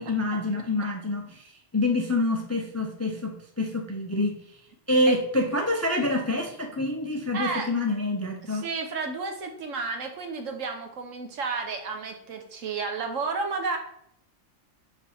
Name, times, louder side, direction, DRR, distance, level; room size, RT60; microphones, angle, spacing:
voice 1, 0.0-1.4 1.7-4.4 4.9-8.7, left 2 dB, 20° left, 3 dB, 0.4 m, -26 dB
voice 2, 7.3-7.7 8.4-13.8, right 4 dB, 80° right, 4 dB, 1.4 m, -32 dB
4.6 x 4.4 x 5.8 m, 0.71 s
omnidirectional pair, 1.3 m